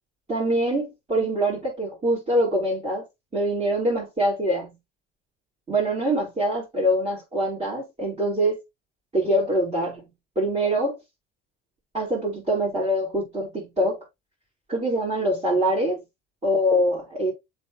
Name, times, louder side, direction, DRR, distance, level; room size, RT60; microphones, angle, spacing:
voice 1, 0.3-3.0 3.3-4.7 5.7-8.6 9.1-10.1 10.4-11.0 11.9-14.0 14.7-16.0 16.4-17.3, right 1 dB, 25° right, 4.4 m, -24 dB
7.4 x 4.3 x 3.0 m
supercardioid pair, 80°, 29 cm